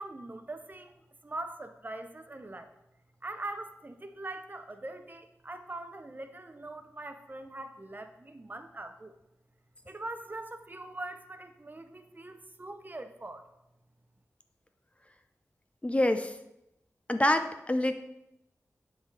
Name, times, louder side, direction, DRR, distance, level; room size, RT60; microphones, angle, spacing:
voice 1, 0.0-2.7 3.2-9.2 9.9-13.4, right 2 dB, 30° right, 8 dB, 0.6 m, -42 dB
voice 2, 15.8-16.3 17.1-17.9, left 1 dB, 20° left, 8 dB, 0.4 m, -26 dB
9.8 x 3.6 x 3.2 m, 0.86 s
wide cardioid pair, 60°, 6 cm